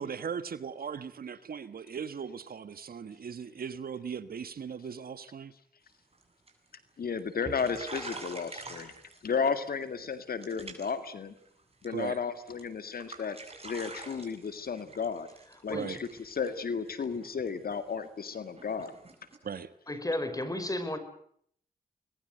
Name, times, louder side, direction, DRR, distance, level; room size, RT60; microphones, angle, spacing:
voice 1, 0.0-5.5 11.9-12.2 15.7-16.0 19.4-19.7, right 6 dB, 70° right, 14 dB, 1.4 m, -38 dB
sound 1, 5.9-6.2 6.5-6.9 7.2-7.3 7.4-9.5 9.8-10.1 10.4-11.1 11.4-12.1 12.5-12.6 12.9-19.4, right 3 dB, 40° right, 7.3 m, -46 dB
voice 2, 7.0-8.9 9.2-11.3 11.8-13.4 13.6-15.3 15.6-18.9, left 6 dB, 70° left, 11 dB, 2.0 m, -33 dB
voice 3, 19.9-21.0, left 1 dB, 20° left, 10 dB, 5.8 m, -33 dB
25.0 x 21.0 x 7.9 m, 0.64 s
cardioid pair, 50°, 16 cm